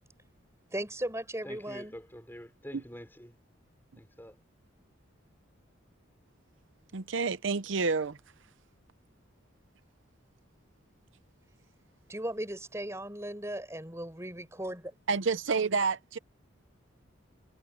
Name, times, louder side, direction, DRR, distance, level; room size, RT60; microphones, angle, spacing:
voice 1, 0.7-1.9 12.1-14.9, right 1 dB, 15° right, 4.6 m, -37 dB
voice 2, 1.4-3.3 4.2-4.3, equal, 10° left, 5.8 m, -46 dB
voice 3, 6.9-8.2 15.1-16.2, right 4 dB, 70° right, 0.7 m, -29 dB
head